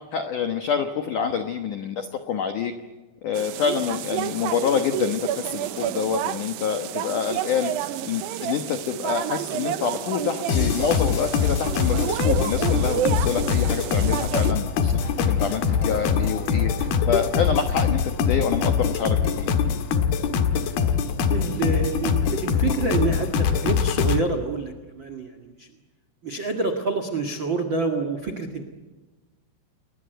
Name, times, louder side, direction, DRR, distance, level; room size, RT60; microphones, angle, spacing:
voice 1, 0.1-2.7 3.2-7.7 8.0-16.7 17.1-19.5, left 7 dB, 75° left, 7 dB, 1.8 m, -27 dB
sound 1, 3.3-14.5, right 11 dB, 85° right, 2.0 m, -30 dB
sound 2, 10.5-24.2, left 6 dB, 60° left, 3.0 m, -23 dB
sound 3, 13.8-18.5, left 2 dB, 15° left, 7.7 m, -39 dB
voice 2, 21.3-25.7 26.2-28.6, right 4 dB, 65° right, 8 dB, 1.1 m, -27 dB
29.5 x 22.0 x 8.1 m, 1.2 s
omnidirectional pair, 5.6 m